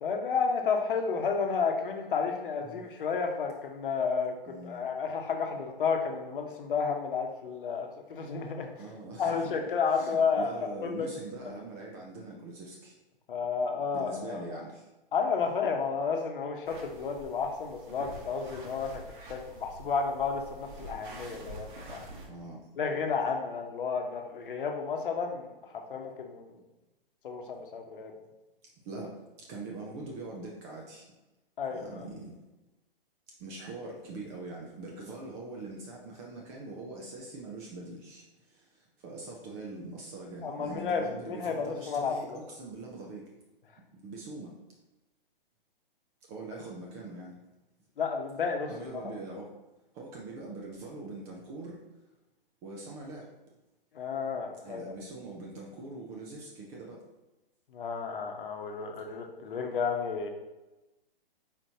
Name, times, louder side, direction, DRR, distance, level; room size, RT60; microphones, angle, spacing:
voice 1, 0.0-8.7 9.2-10.5 10.8-11.1 13.3-14.6 15.1-19.0 19.3-22.1 22.8-25.5 25.9-26.6 27.2-28.1 31.6-32.1 40.4-42.4 48.0-48.7 53.9-54.9 57.7-60.3, left 5 dB, 60° left, 3 dB, 0.9 m, -31 dB
voice 2, 4.5-4.8 8.8-9.6 9.9-12.9 13.9-14.9 22.2-22.7 28.8-31.1 31.7-32.4 33.4-43.3 43.9-44.5 46.3-47.4 48.7-49.6 49.9-51.8 52.6-53.3 54.6-57.0, right 2 dB, 15° right, -2 dB, 0.3 m, -43 dB
sound 1, 16.6-22.3, right 2 dB, 55° right, 1.0 m, -47 dB
4.4 x 4.1 x 2.7 m, 1.1 s
figure-of-eight pair, 125°, 29 cm